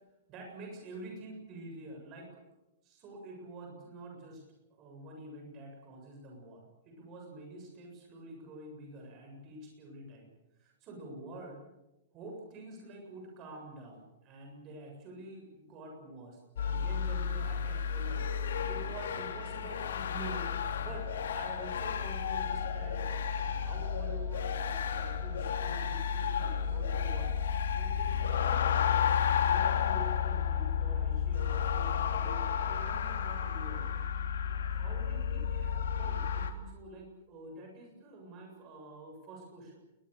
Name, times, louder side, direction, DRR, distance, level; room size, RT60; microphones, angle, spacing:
voice 1, 0.3-2.4 2.8-4.4 4.7-10.3 10.6-11.6 12.1-21.0 21.3-27.3 27.7-29.1 29.4-33.9 34.7-39.7, right 2 dB, 20° right, 1 dB, 7.4 m, -47 dB
sound 1, 16.6-36.5, left 7 dB, 90° left, 3.1 m, -32 dB
28.0 x 22.0 x 6.9 m, 0.96 s
supercardioid pair, 180°, 0 cm